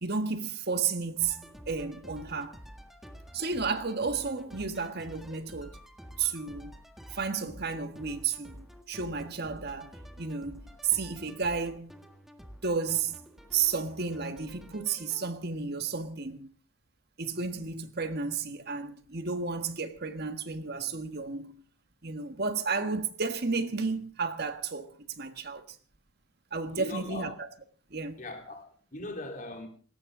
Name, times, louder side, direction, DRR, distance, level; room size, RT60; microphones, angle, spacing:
voice 1, 0.0-2.6 3.3-5.8 6.2-6.7 7.1-11.9 12.6-13.1 13.5-16.5 17.2-21.6 22.0-25.8 26.5-27.5 27.9-28.2, right 5 dB, 50° right, 1.5 m, -32 dB
sound 1, 1.2-15.4, equal, ahead, 1.7 m, -49 dB
voice 2, 26.8-27.3 28.2-29.7, left 2 dB, 40° left, 3.8 m, -40 dB
20.0 x 18.0 x 3.8 m
head